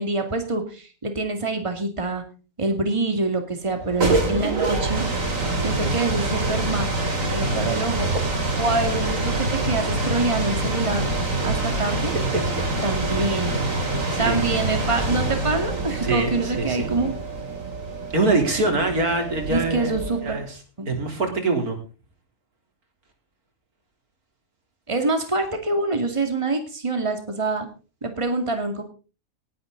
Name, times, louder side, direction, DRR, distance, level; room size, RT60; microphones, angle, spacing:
voice 1, 0.0-2.2 2.6-5.1 5.6-6.9 7.3-8.1 8.6-11.1 11.4-12.1 12.8-13.6 14.2-17.1 19.5-20.4 20.8-20.9 24.9-27.7 28.0-28.8, right 2 dB, 20° right, 5 dB, 2.3 m, -25 dB
sound 1, 3.7-20.4, right 2 dB, 60° right, 3.5 m, -26 dB
voice 2, 16.0-16.9 18.1-20.0 20.2-20.6 20.9-21.8, right 3 dB, 85° right, 4 dB, 3.8 m, -24 dB
18.5 x 11.0 x 3.9 m, 0.35 s
omnidirectional pair, 1.5 m